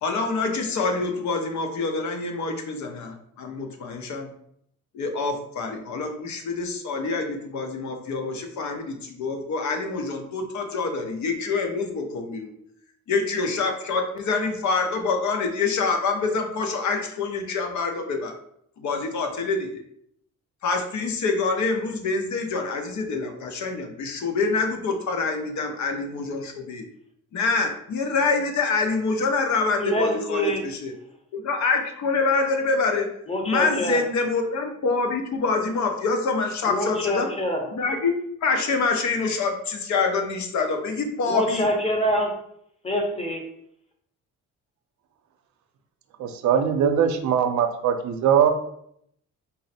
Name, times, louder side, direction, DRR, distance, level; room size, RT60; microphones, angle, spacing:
voice 1, 0.0-4.3 4.9-12.5 13.1-17.9 18.8-19.8 20.6-26.8 27.3-30.9 31.3-33.1 33.4-37.3 37.8-38.1 38.4-41.7, left 4 dB, 70° left, 4 dB, 0.8 m, -26 dB
voice 2, 29.8-30.6 33.3-34.0 36.6-37.7 41.2-42.3 42.8-43.4, equal, 20° left, 2 dB, 0.9 m, -25 dB
voice 3, 46.2-48.5, right 8 dB, 70° right, 7 dB, 0.6 m, -21 dB
3.9 x 2.1 x 4.1 m, 0.71 s
cardioid pair, 90°, 30 cm